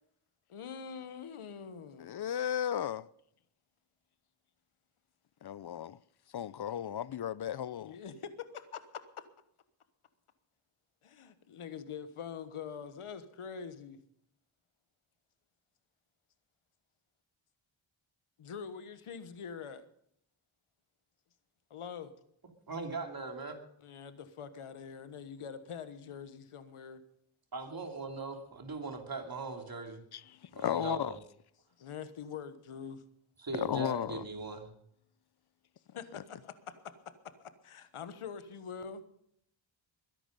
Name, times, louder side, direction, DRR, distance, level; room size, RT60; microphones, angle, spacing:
voice 1, 0.5-2.1 7.8-9.2 11.0-14.0 18.4-19.9 21.7-22.1 23.8-27.0 31.8-33.0 35.9-36.4 36.7-37.1 37.4-39.0, left 7 dB, 90° left, 1.3 m, -44 dB
voice 2, 2.0-3.1 5.4-6.0 6.3-8.0 30.1-31.2 33.5-34.2 36.1-36.2, left 10 dB, 55° left, 0.5 m, -35 dB
voice 3, 22.7-23.6 27.5-30.0 30.5-31.1 33.4-34.7, right 3 dB, 45° right, 3.0 m, -40 dB
22.0 x 11.0 x 5.3 m
cardioid pair, 70°, 49 cm